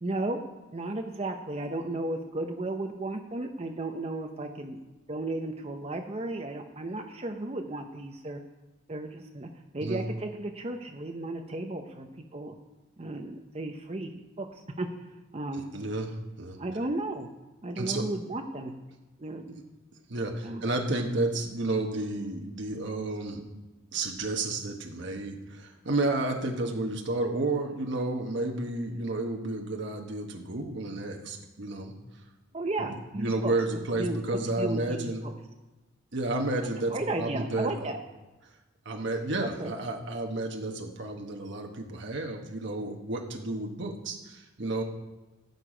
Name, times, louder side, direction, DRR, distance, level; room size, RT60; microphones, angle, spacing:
voice 1, 0.0-0.4 0.7-4.8 5.1-8.4 8.9-9.5 9.7-12.6 13.0-14.1 14.4-14.5 14.8-14.9 15.3-15.7 16.6-17.3 17.6-18.7 19.2-19.6 20.4-20.6 32.5-33.5 34.0-34.2 34.6-35.1 36.9-38.0 39.4-39.7, right 2 dB, 30° right, 4 dB, 0.7 m, -34 dB
voice 2, 15.5-16.6 17.8-18.1 19.5-19.6 20.1-23.5 23.9-31.9 32.8-35.2 36.1-37.9 38.8-44.8, right 2 dB, 55° right, 2 dB, 1.1 m, -31 dB
14.5 x 6.7 x 5.0 m, 1.1 s
head